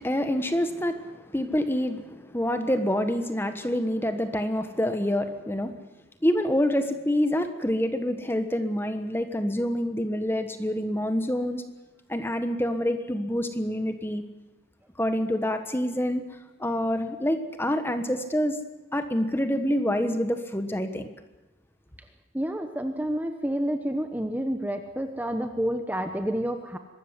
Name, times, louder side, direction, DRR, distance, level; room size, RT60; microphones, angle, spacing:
voice 1, 0.0-5.7 6.2-11.6 12.1-14.2 15.0-16.2 16.6-18.6 18.9-21.1, equal, 10° left, 8 dB, 1.3 m, -27 dB
voice 2, 22.3-26.8, equal, 10° right, 6 dB, 1.0 m, -29 dB
23.0 x 13.5 x 9.8 m, 1.1 s
head